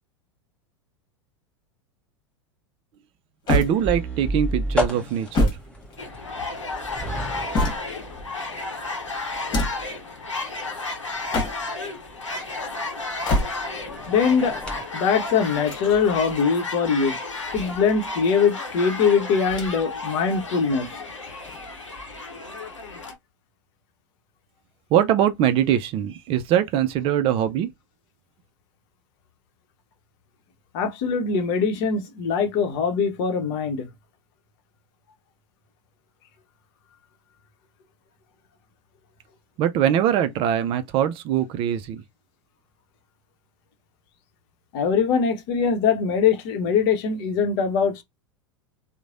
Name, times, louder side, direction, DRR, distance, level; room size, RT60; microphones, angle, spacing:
sound 1, 3.5-4.3 5.1-6.5 7.1-8.2 9.3-10.0 11.1-11.9 13.0-13.9 15.4-16.4 17.3-18.2 19.4-20.0 20.3-20.4 21.4-22.2, left 1 dB, 30° left, 1.4 m, -28 dB
voice 1, 3.5-5.5 24.9-27.7 39.6-42.0, right 10 dB, 35° right, 0.4 m, -22 dB
sound 2, 3.6-14.8, equal, 5° left, 0.9 m, -34 dB
sound 3, 6.0-23.1, left 3 dB, 90° left, 0.7 m, -33 dB
voice 2, 14.1-14.6 14.9-17.2 17.5-20.9 30.7-33.9 44.7-48.0, left 6 dB, 50° left, 0.8 m, -22 dB
3.1 x 2.1 x 2.5 m
figure-of-eight pair, 90°, 15 cm